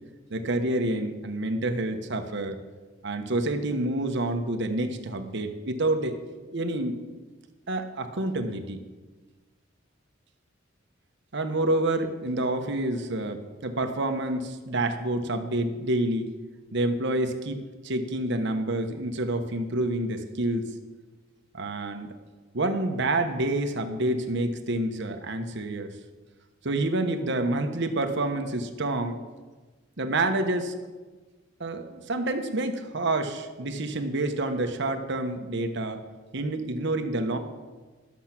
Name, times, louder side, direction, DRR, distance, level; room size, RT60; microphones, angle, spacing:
voice 1, 0.3-2.6 3.0-6.2 6.5-7.0 7.7-8.8 11.3-16.3 16.7-20.7 21.5-22.1 22.5-25.9 26.6-29.2 30.0-30.7 31.6-36.0 36.3-37.4, right 2 dB, 60° right, 7 dB, 1.0 m, -28 dB
12.5 x 7.2 x 5.9 m, 1.3 s
head